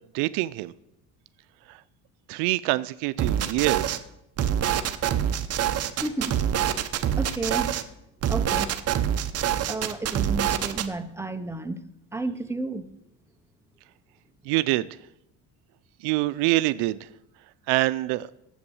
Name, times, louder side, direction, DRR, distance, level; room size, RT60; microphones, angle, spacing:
voice 1, 0.1-0.7 2.3-4.0 14.5-14.9 16.0-17.1 17.7-18.3, right 18 dB, 85° right, 15 dB, 0.5 m, -25 dB
sound 1, 3.2-4.0 4.4-7.8 8.2-10.9, right 10 dB, 40° right, 0.8 m, -25 dB
voice 2, 6.0-6.4 6.7-6.8 7.2-7.9 8.3-8.7 9.7-11.8 12.1-12.9, right 3 dB, 5° right, 8 dB, 0.6 m, -32 dB
9.8 x 8.0 x 7.0 m, 0.81 s
cardioid pair, 125°, 38 cm